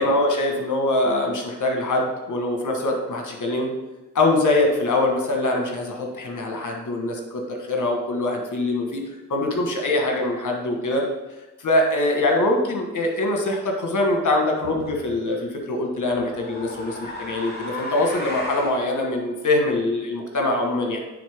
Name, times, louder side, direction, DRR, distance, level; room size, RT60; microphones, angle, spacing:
voice 1, 0.0-3.7 4.1-9.0 9.3-11.1 11.6-21.0, left 2 dB, 65° left, 2 dB, 1.4 m, -23 dB
sound 1, 14.6-15.0 16.0-18.8, left 1 dB, 30° left, 2.0 m, -35 dB
9.4 x 3.7 x 3.5 m, 1.1 s
cardioid pair, 50°, 33 cm